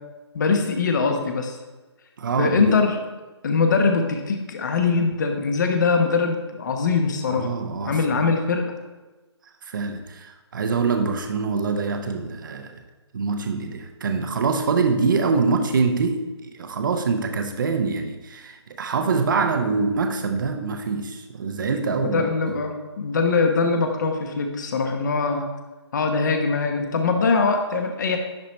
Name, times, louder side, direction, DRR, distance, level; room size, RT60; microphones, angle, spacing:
voice 1, 0.3-1.6 2.4-3.0 3.4-7.5 7.8-8.7 22.0-25.5 25.9-28.2, left 4 dB, 40° left, 5 dB, 1.1 m, -22 dB
voice 2, 2.2-2.8 7.3-8.3 9.6-12.8 13.1-22.6, right 4 dB, 45° right, 6 dB, 0.9 m, -25 dB
11.0 x 4.2 x 4.3 m, 1.2 s
figure-of-eight pair, 150°, 15 cm